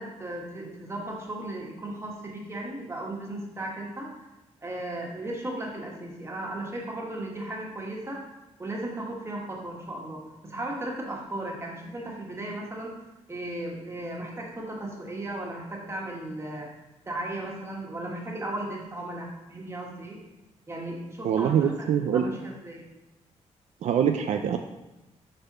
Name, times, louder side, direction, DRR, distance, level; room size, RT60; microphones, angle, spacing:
voice 1, 0.0-4.1 4.6-8.2 8.6-12.9 13.3-16.7 17.0-20.2 20.7-22.8, right 1 dB, 20° right, -1 dB, 1.6 m, -36 dB
voice 2, 21.2-22.2 23.8-24.6, right 8 dB, 70° right, 6 dB, 0.5 m, -24 dB
6.7 x 4.2 x 5.5 m, 1.0 s
wide cardioid pair, 135°, 12 cm